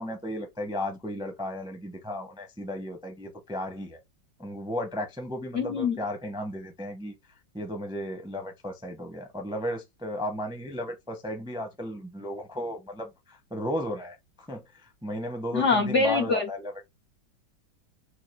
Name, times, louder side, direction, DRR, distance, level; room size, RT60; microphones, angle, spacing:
voice 1, 0.0-4.0 4.4-7.1 7.5-16.9, left 1 dB, 5° right, 0.3 m, -35 dB
voice 2, 5.5-6.0 15.5-16.5, left 4 dB, 85° left, 0.6 m, -24 dB
4.7 x 2.4 x 4.5 m
omnidirectional pair, 2.1 m